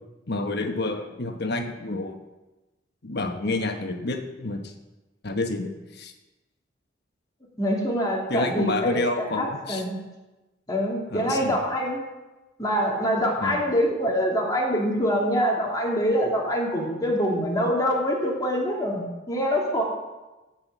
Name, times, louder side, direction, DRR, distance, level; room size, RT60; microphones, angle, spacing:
voice 1, 0.3-2.2 3.0-4.7 5.2-6.1 8.3-9.8 11.1-11.6 13.4-13.7, left 2 dB, 60° left, 5 dB, 1.2 m, -29 dB
voice 2, 7.6-10.0 10.7-12.0 12.6-19.8, equal, 20° left, -2 dB, 2.9 m, -25 dB
15.5 x 5.8 x 8.2 m, 1.1 s
head